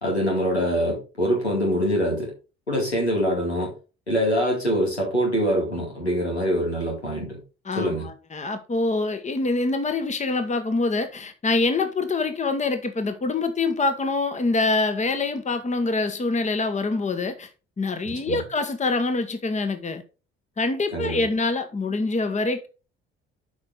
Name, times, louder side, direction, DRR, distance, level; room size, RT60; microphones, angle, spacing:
voice 1, 0.0-2.3 2.7-3.7 4.1-7.4 7.8-8.1 18.0-18.4 20.9-21.3, equal, 90° left, 2.3 m, -24 dB
voice 2, 7.6-17.5 17.8-20.0 20.6-22.7, left 3 dB, 20° left, 1.3 m, -25 dB
8.5 x 5.5 x 3.9 m
figure-of-eight pair, 50°, 32 cm